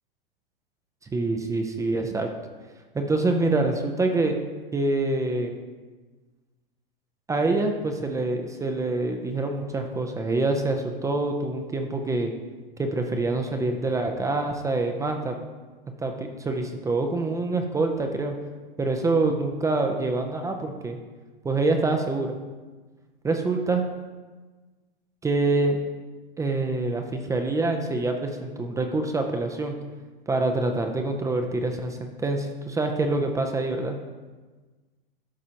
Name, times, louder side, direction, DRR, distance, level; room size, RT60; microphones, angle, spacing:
voice 1, 1.1-2.3 2.9-4.4 4.7-5.6 7.3-12.3 12.8-15.4 16.0-18.3 18.8-21.0 21.4-22.3 23.2-23.8 25.2-25.8 26.4-29.7 30.3-34.0, right 2 dB, 10° right, 4 dB, 0.5 m, -26 dB
12.0 x 4.9 x 2.8 m, 1.3 s
hypercardioid pair, 115°, 29 cm